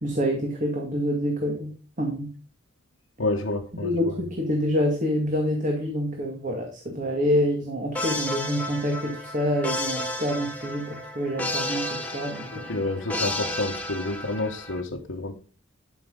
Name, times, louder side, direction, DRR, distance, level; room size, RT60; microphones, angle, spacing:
voice 1, 0.0-2.3 3.8-12.7, equal, 40° right, 2.0 m, -27 dB
voice 2, 3.2-3.9 12.5-15.3, left 2 dB, 85° left, 1.3 m, -29 dB
sound 1, 7.9-14.8, left 1 dB, 10° left, 1.6 m, -32 dB
12.5 x 6.0 x 3.9 m
head